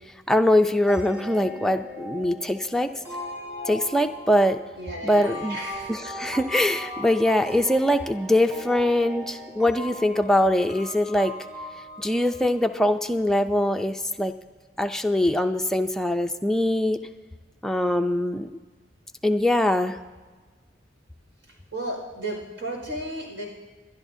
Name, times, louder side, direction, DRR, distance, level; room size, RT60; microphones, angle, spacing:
voice 1, 0.3-2.9 3.7-4.6 5.0-5.6 5.9-11.3 12.0-14.3 14.8-17.0 17.6-18.5 19.2-20.0, left 1 dB, 5° left, 5 dB, 0.5 m, -22 dB
sound 1, 0.9-13.3, left 1 dB, 15° right, 3.1 m, -39 dB
voice 2, 4.8-5.9 21.7-23.5, right 1 dB, 80° right, -1 dB, 4.9 m, -33 dB
26.5 x 11.5 x 2.7 m, 1.4 s
head